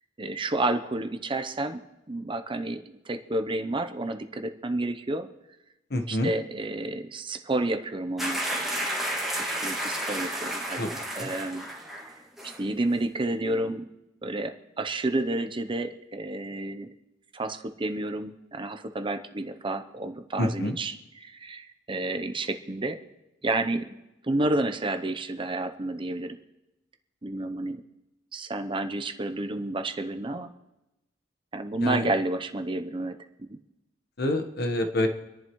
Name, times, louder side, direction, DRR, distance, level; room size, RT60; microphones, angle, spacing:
voice 1, 0.2-1.8 2.1-5.3 6.1-8.9 9.4-11.6 12.4-13.9 14.2-16.9 17.3-23.0 23.4-23.9 24.2-26.4 27.2-27.8 28.3-30.5 31.5-33.2 33.5-33.6, right 2 dB, 30° right, 8 dB, 0.7 m, -30 dB
voice 2, 5.9-6.3 10.8-10.9 11.2-11.3 20.4-20.8 31.8-32.1 34.2-35.1, left 1 dB, 60° left, 6 dB, 1.2 m, -27 dB
sound 1, 8.2-12.1 12.4-12.6, right 1 dB, ahead, 2.1 m, -31 dB
26.5 x 11.0 x 3.1 m, 0.98 s
head